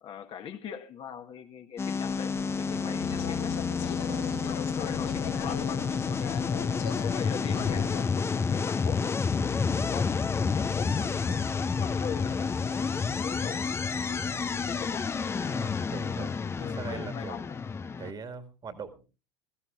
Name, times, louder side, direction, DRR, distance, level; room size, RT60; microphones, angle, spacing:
voice 1, 0.0-3.6 4.1-6.3 6.9-9.4 9.8-13.7 14.4-15.2 15.7-17.6, left 8 dB, 45° left, 1.3 m, -42 dB
sound 1, 1.8-18.1, left 5 dB, 20° left, 0.6 m, -30 dB
Wind, 2.0-8.6, right 6 dB, 65° right, 3.4 m, -52 dB
voice 2, 2.7-3.0 3.9-4.5 9.6-9.9 14.1-14.4 15.4-17.4 18.0-19.0, right 5 dB, 35° right, 1.9 m, -42 dB
sound 2, 3.0-8.1, left 13 dB, 70° left, 0.6 m, -38 dB
21.5 x 14.0 x 2.5 m
hypercardioid pair, 75°, 13 cm